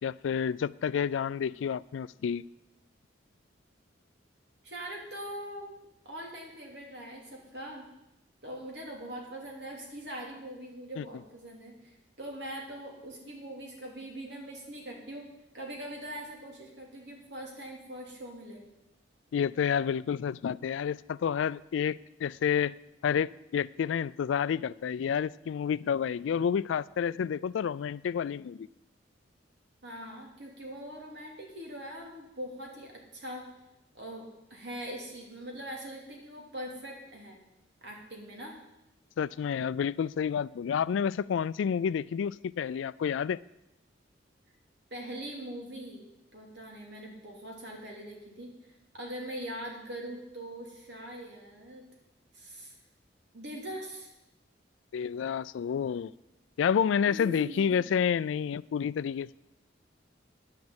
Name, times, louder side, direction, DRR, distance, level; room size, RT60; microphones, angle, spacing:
voice 1, 0.0-2.4 11.0-11.1 19.3-22.7 23.0-28.7 39.2-43.4 54.9-56.1 56.6-59.3, left 7 dB, 85° left, 20 dB, 0.3 m, -29 dB
voice 2, 4.6-5.7 6.0-7.9 8.4-15.2 15.5-18.6 29.8-33.5 33.9-37.4 37.8-38.5 44.9-46.0 46.3-48.5 48.9-51.8 52.3-52.7 53.3-54.1 57.0-57.7, right 1 dB, 65° right, -1 dB, 3.1 m, -42 dB
10.5 x 6.4 x 8.7 m, 0.92 s
head